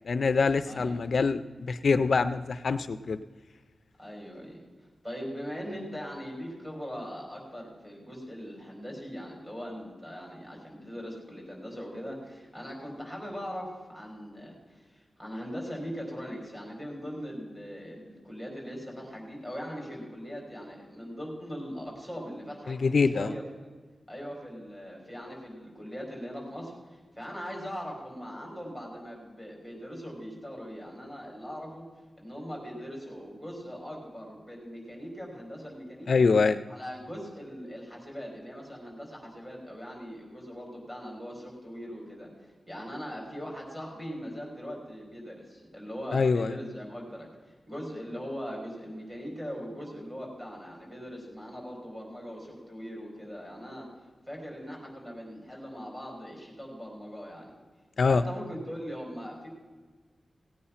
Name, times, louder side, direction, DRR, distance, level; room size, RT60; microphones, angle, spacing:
voice 1, 0.0-3.2 22.7-23.3 36.1-36.6 46.1-46.5 58.0-58.2, left 4 dB, 60° left, 11 dB, 0.4 m, -24 dB
voice 2, 0.7-1.0 4.0-4.6 5.0-23.4 24.1-31.8 32.2-36.3 36.7-53.9 54.3-57.5 58.1-59.5, equal, 10° right, -2 dB, 4.4 m, -40 dB
17.5 x 8.6 x 5.7 m, 1.4 s
wide cardioid pair, 165°, 0 cm